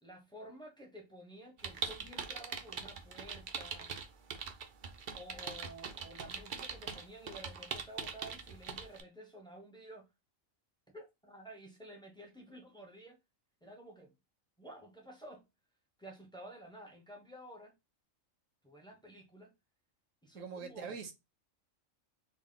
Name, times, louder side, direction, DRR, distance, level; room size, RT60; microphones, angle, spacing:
voice 1, 0.0-3.9 5.1-10.1 10.9-13.2 13.6-14.1 14.6-15.4 16.0-17.8 18.6-19.5 20.2-21.0, right 1 dB, 5° left, 0.6 m, -52 dB
sound 1, 1.6-9.0, right 6 dB, 55° right, 0.6 m, -42 dB
voice 2, 20.3-21.1, right 5 dB, 75° right, 1.1 m, -43 dB
3.9 x 2.1 x 3.7 m
omnidirectional pair, 1.4 m